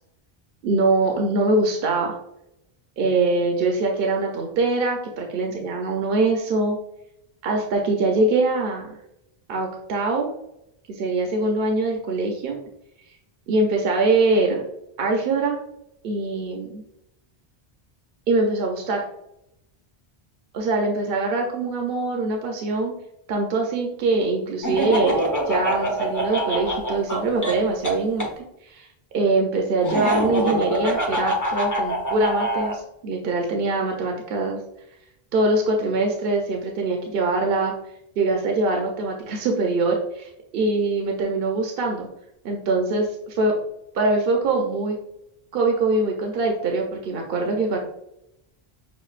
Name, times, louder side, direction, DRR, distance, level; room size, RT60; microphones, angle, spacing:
voice 1, 0.6-2.2 3.0-6.8 7.4-9.0 9.5-10.3 10.9-12.6 13.5-14.6 15.0-15.6 16.0-16.8 18.3-19.0 20.5-22.9 23.3-28.3 28.6-28.9 29.1-34.6 35.3-37.7 38.2-42.1 42.4-43.6 43.9-45.0 45.5-47.8, right 2 dB, 70° right, 1 dB, 0.8 m, -23 dB
Laughter, 24.6-28.3 29.8-32.8, right 1 dB, 25° left, 0.6 m, -25 dB
6.3 x 2.6 x 2.4 m, 0.81 s
omnidirectional pair, 1.0 m